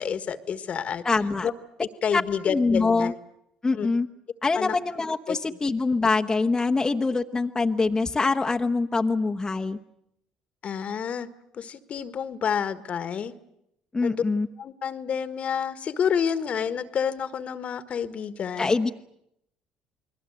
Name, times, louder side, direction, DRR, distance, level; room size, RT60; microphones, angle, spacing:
voice 1, 0.0-1.0 1.4-1.5 2.0-3.1 3.7-3.9 4.5-4.7 5.3-5.4 10.6-11.3 11.5-13.3 14.0-14.2 14.6-18.8, left 7 dB, 50° left, 13 dB, 1.5 m, -29 dB
voice 2, 1.0-1.5 2.1-3.1 3.6-4.1 4.4-9.8 13.9-14.5 18.6-18.9, left 3 dB, 20° left, 4 dB, 1.1 m, -24 dB
29.0 x 20.5 x 7.9 m, 0.76 s
hypercardioid pair, 60°, 3 cm